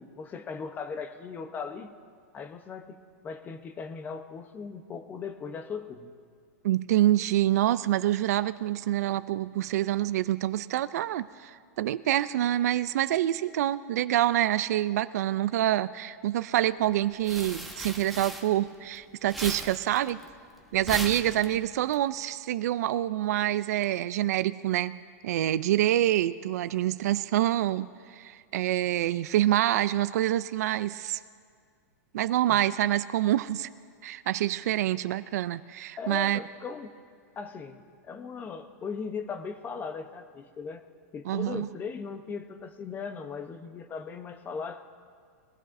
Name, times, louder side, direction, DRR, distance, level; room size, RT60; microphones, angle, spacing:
voice 1, 0.0-1.9 2.3-3.0 3.2-6.1 32.5-32.6 36.0-36.9 37.4-40.8 41.1-44.8, left 5 dB, 20° left, 9 dB, 0.8 m, -38 dB
voice 2, 6.6-20.2 20.7-25.0 25.2-31.2 32.1-33.7 34.0-36.4 41.3-41.7, right 13 dB, 70° right, 14 dB, 0.4 m, -26 dB
sound 1, 16.9-19.0 19.2-21.9, right 1 dB, ahead, 1.1 m, -38 dB
21.5 x 15.5 x 2.6 m, 2.1 s
hypercardioid pair, 140°, 9 cm